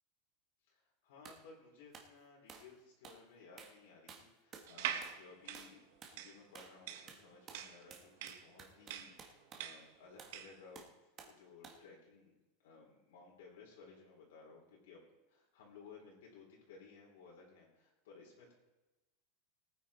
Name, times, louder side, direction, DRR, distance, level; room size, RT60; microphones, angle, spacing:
voice 1, 0.6-5.8 6.1-15.0 15.3-18.5, left 4 dB, 80° left, -2 dB, 4.0 m, -58 dB
sound 1, 1.3-1.4 1.9-2.1 2.5-2.7 3.0-3.2 3.6-3.8 4.1-4.7 5.0-5.3 5.5-5.8 6.0-6.2 6.6-6.8 7.1-9.7 10.2-10.4 10.8-11.4 11.6-11.9, right 6 dB, 25° right, 1.7 m, -55 dB
sound 2, 4.7-10.6, right 10 dB, 65° right, 1.3 m, -44 dB
19.0 x 9.3 x 4.4 m, 1.0 s
supercardioid pair, 160°, 0 cm